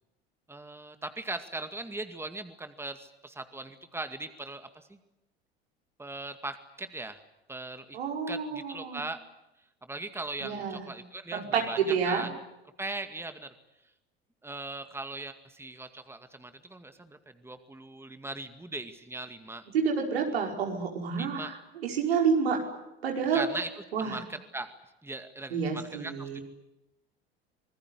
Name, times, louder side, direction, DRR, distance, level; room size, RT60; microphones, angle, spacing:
voice 1, 0.5-5.0 6.0-7.2 7.5-8.0 8.3-9.2 9.8-12.3 12.8-13.5 14.4-19.6 21.2-21.5 23.3-23.7 24.0-24.7 25.0-26.4, right 2 dB, 10° right, 8 dB, 2.2 m, -39 dB
voice 2, 7.9-9.0 10.4-10.9 11.3-12.3 19.7-22.6 23.0-23.5 23.9-24.2 25.5-26.4, right 6 dB, 80° right, 1 dB, 5.3 m, -29 dB
26.5 x 20.0 x 9.9 m, 0.95 s
hypercardioid pair, 75°, 30 cm